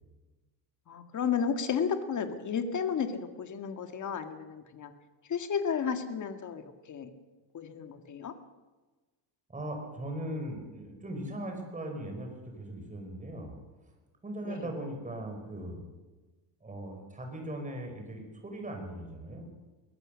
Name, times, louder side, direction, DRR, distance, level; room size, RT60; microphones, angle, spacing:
voice 1, 0.9-4.9 5.3-7.1 7.5-8.3 14.4-14.7, left 7 dB, 40° left, 7 dB, 2.1 m, -33 dB
voice 2, 9.5-13.5 14.2-15.8 16.6-19.4, right 1 dB, 15° right, 3 dB, 5.2 m, -39 dB
23.0 x 18.0 x 6.5 m, 1.2 s
cardioid pair, 145°, 48 cm